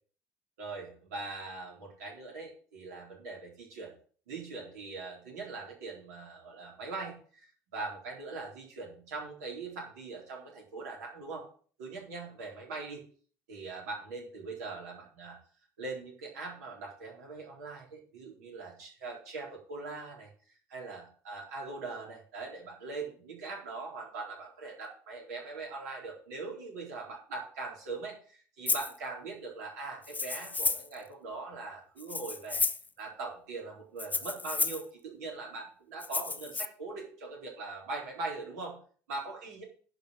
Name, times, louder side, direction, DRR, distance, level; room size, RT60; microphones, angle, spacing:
voice 1, 0.6-3.9 4.3-11.5 11.8-13.0 13.5-15.4 15.8-20.3 20.7-32.6 33.0-38.8 39.1-39.6, right 3 dB, 70° right, -2 dB, 4.1 m, -41 dB
Rattle (instrument), 28.7-28.9 30.0-30.9 32.0-32.9 34.0-34.8 36.0-36.7, left 4 dB, 20° left, 0.7 m, -32 dB
11.0 x 4.9 x 7.9 m, 0.44 s
figure-of-eight pair, 55°, 9 cm